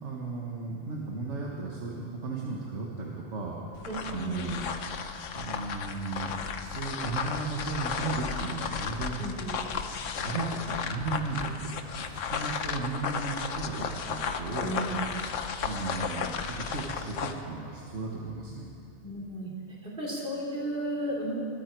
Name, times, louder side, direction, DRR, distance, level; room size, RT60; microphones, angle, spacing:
voice 1, 0.0-4.6 5.3-9.2 10.2-14.8 15.6-16.3 16.6-18.7, right 3 dB, 70° right, -3 dB, 1.8 m, -35 dB
sound 1, 3.7-17.4, left 6 dB, 90° left, 1.2 m, -34 dB
voice 2, 3.8-4.6 9.2-9.6 14.6-15.1 19.0-21.3, right 1 dB, 50° right, -3 dB, 3.8 m, -34 dB
23.0 x 13.0 x 4.6 m, 2.5 s
omnidirectional pair, 1.3 m